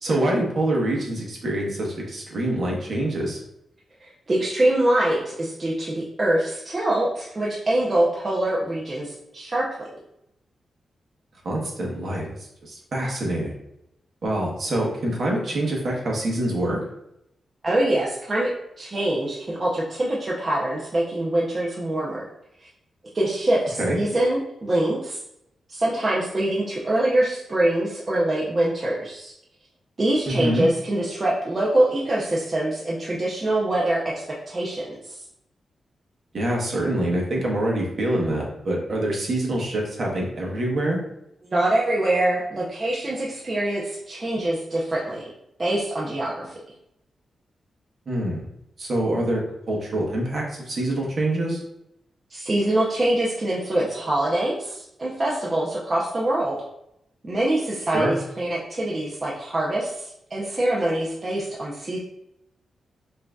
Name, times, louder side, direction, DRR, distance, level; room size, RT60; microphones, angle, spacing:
voice 1, 0.0-3.4 11.4-13.5 14.2-16.8 23.8-24.0 30.3-30.7 36.3-41.0 48.1-48.5 48.8-49.4 49.7-51.6 57.9-58.2, right 1 dB, 50° right, -2 dB, 1.1 m, -25 dB
voice 2, 4.0-9.9 17.6-18.5 18.8-22.2 23.1-25.2 25.7-29.3 30.0-35.2 41.4-45.2 45.6-46.5 52.3-56.6 57.2-62.0, right 1 dB, 30° right, -5 dB, 0.6 m, -24 dB
5.5 x 2.7 x 2.3 m, 0.80 s
wide cardioid pair, 130°, 0 cm